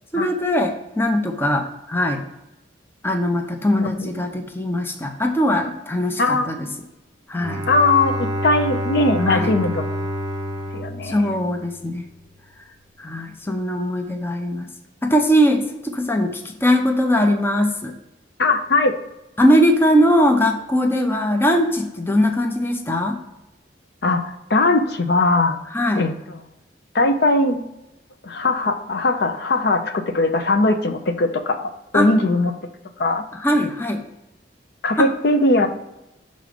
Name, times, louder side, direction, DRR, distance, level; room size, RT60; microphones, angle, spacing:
voice 1, 0.1-2.2 3.0-6.7 7.3-7.6 9.3-9.5 11.0-12.0 13.0-14.7 15.0-17.9 19.4-23.2 25.7-26.0 31.9-32.1 33.3-34.0 35.0-35.1, equal, 10° left, 4 dB, 0.6 m, -20 dB
voice 2, 3.7-4.1 6.2-6.5 7.7-9.8 10.7-11.3 18.4-18.9 24.0-25.6 26.0-26.1 26.9-27.6 28.2-32.5 33.0-33.2 34.8-35.7, left 2 dB, 60° left, 7 dB, 0.6 m, -20 dB
Bowed string instrument, 7.4-12.1, equal, 25° right, 0.7 m, -28 dB
6.3 x 3.9 x 5.0 m, 0.92 s
head